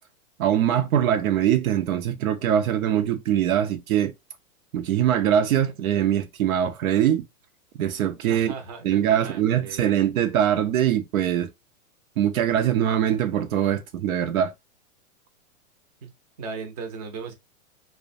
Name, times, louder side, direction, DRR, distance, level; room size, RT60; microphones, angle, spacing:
voice 1, 0.4-4.1 4.7-7.3 7.8-8.5 8.8-11.5 12.2-14.5, right 10 dB, 80° right, 0.6 m, -22 dB
voice 2, 8.3-9.9 16.0-16.1 16.4-17.3, right 5 dB, 30° right, 0.5 m, -38 dB
2.4 x 2.1 x 2.5 m
hypercardioid pair, 160°, 42 cm